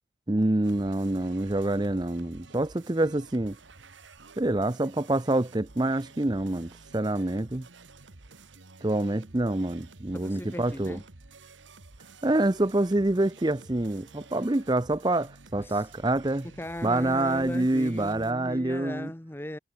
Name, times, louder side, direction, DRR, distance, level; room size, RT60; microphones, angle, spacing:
voice 1, 0.3-3.6 4.4-7.7 8.8-11.0 12.2-16.5 16.8-19.1, right 1 dB, 20° right, 0.6 m, -26 dB
sound 1, 0.6-18.3, right 3 dB, 80° right, 1.9 m, -51 dB
voice 2, 10.1-11.0 15.6-15.8 16.4-19.6, left 1 dB, 10° left, 0.8 m, -38 dB
head